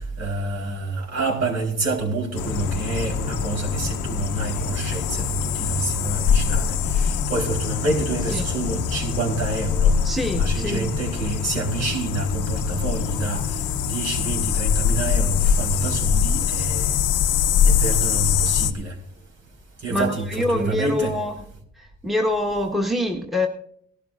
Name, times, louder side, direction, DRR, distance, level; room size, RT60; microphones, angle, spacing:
voice 1, 0.2-10.0 10.3-13.4 13.8-16.9 17.6-18.9 19.8-21.2, right 2 dB, 60° right, 4.1 m, -27 dB
sound 1, 2.3-18.7, left 7 dB, 90° left, 0.8 m, -23 dB
voice 2, 10.0-10.9 19.9-21.3 22.0-23.5, left 1 dB, ahead, 1.3 m, -25 dB
18.5 x 12.0 x 2.5 m
cardioid pair, 90°, 30 cm